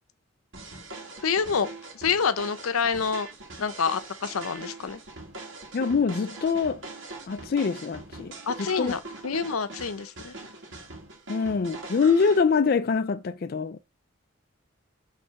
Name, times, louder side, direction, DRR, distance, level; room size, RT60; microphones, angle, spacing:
sound 1, 0.5-12.4, right 2 dB, 60° right, 2.0 m, -42 dB
voice 1, 1.2-1.7 1.9-3.3 3.6-5.0 8.5-10.3, left 6 dB, 85° left, 0.6 m, -27 dB
voice 2, 5.7-6.8 7.3-8.9 11.3-13.8, left 5 dB, 45° left, 0.3 m, -24 dB
5.5 x 3.3 x 5.7 m
head